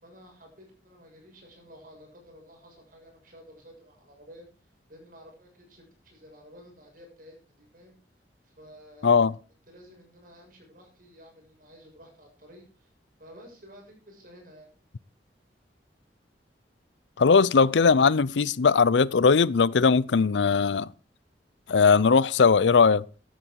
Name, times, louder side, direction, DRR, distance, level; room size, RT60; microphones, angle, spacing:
voice 1, 0.0-4.5 4.9-7.9 8.4-9.3 9.7-12.9 13.2-14.7, equal, 50° right, 6.9 m, -52 dB
voice 2, 9.0-9.3 17.2-20.9 21.7-23.0, left 5 dB, 85° left, 0.5 m, -19 dB
15.0 x 11.0 x 4.6 m
head